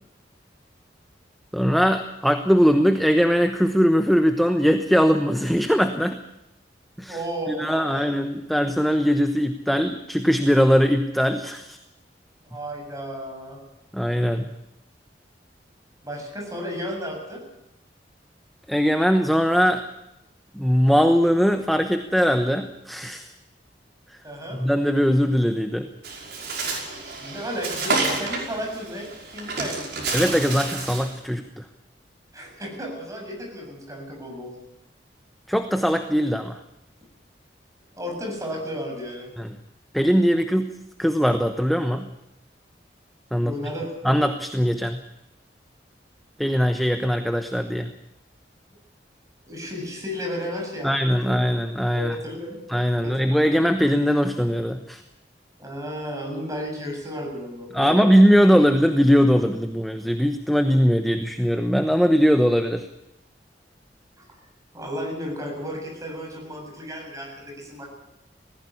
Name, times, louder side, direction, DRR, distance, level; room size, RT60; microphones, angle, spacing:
voice 1, 1.5-6.2 7.0-7.2 7.5-11.8 13.9-14.5 18.7-19.8 20.5-23.3 24.6-25.9 30.1-31.4 35.5-36.6 39.4-39.5 39.9-40.7 41.0-42.1 43.3-43.5 44.0-45.0 46.4-47.9 50.8-52.1 52.7-55.0 57.7-62.9, equal, ahead, 6 dB, 1.0 m, -20 dB
voice 2, 7.1-8.3 12.4-13.6 16.0-17.4 24.2-24.6 27.2-30.2 32.3-34.5 37.9-39.3 43.4-44.2 49.5-50.9 51.2-51.5 51.9-52.6 53.0-53.2 55.6-58.1 64.7-67.9, equal, 20° right, 0 dB, 7.7 m, -33 dB
Bird, 26.0-31.2, right 3 dB, 65° right, 5.7 m, -29 dB
19.5 x 15.5 x 9.9 m, 0.86 s
head